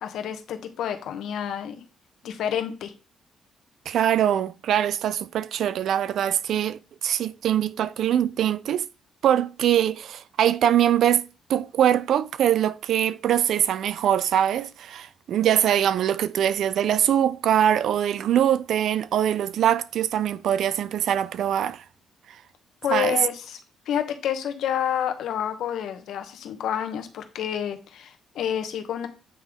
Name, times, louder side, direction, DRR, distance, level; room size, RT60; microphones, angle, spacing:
voice 1, 0.0-1.8 2.2-2.9 22.8-23.6 23.9-29.1, left 9 dB, 80° left, 1.0 m, -29 dB
voice 2, 3.9-8.9 9.2-11.2 11.5-21.8 22.9-23.2, right 10 dB, 70° right, 0.3 m, -23 dB
8.4 x 3.5 x 3.5 m
cardioid pair, 90°, 0 cm